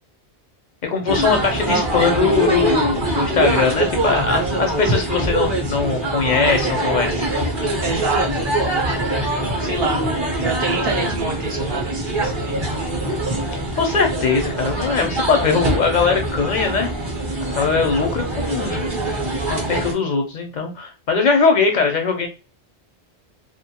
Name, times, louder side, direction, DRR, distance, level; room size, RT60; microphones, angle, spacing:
voice 1, 0.8-7.2 13.5-16.9 17.5-18.8 19.5-22.3, left 5 dB, 55° left, 4 dB, 0.5 m, -20 dB
sound 1, 1.1-19.9, right 1 dB, 35° right, 0.5 m, -23 dB
voice 2, 7.8-9.2 9.6-10.0 10.4-12.7, right 3 dB, 70° right, 1 dB, 0.8 m, -27 dB
2.5 x 2.2 x 2.8 m, 0.31 s
omnidirectional pair, 1.1 m